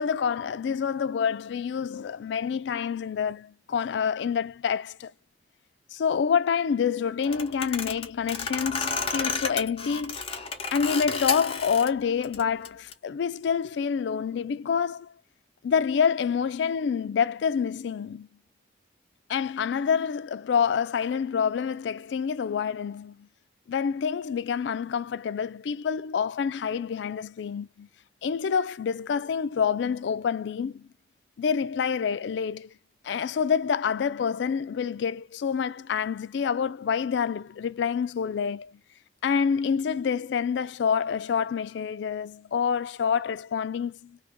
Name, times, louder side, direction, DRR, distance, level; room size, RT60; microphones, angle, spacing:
voice 1, 0.0-5.1 5.9-10.2 10.7-15.1 15.6-18.3 19.3-23.3 23.7-27.9 28.2-30.9 31.4-32.7 33.0-38.7 39.2-44.2, left 6 dB, 75° left, 0.3 m, -27 dB
sound 1, 7.2-11.9 12.2-12.9, left 5 dB, 30° left, 0.8 m, -31 dB
2.9 x 2.6 x 3.4 m
head